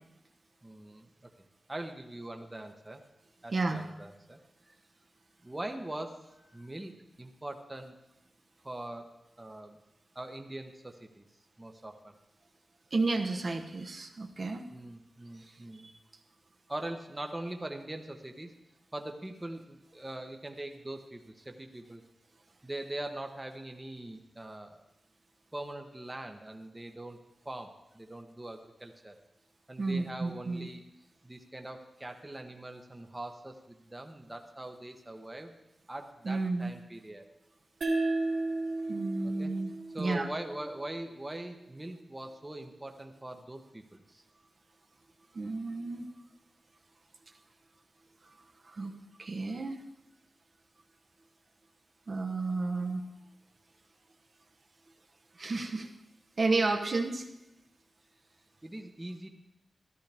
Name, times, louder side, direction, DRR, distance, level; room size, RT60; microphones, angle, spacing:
voice 1, 0.6-1.3 1.7-3.0 3.4-4.4 4.6-4.8 5.4-6.2 6.5-7.9 8.6-9.8 10.1-11.3 11.6-12.1 14.7-15.9 16.7-18.5 18.9-22.0 22.6-24.8 25.5-29.2 29.7-30.8 31.2-35.5 35.9-37.3 39.2-39.5 39.9-44.2 58.6-59.3, right 1 dB, 15° right, 5 dB, 0.9 m, -42 dB
voice 2, 3.5-3.8 12.9-14.7 15.4-15.9 29.8-30.7 36.2-36.7 38.9-39.7 40.0-40.3 45.3-46.1 48.6-48.9 49.2-49.8 52.1-53.0 55.3-55.9 56.4-57.3, right 3 dB, 50° right, 3 dB, 0.9 m, -32 dB
sound 1, 37.8-41.0, right 2 dB, 70° right, 2.4 m, -34 dB
13.5 x 13.0 x 3.4 m, 0.92 s
wide cardioid pair, 100°, 0 cm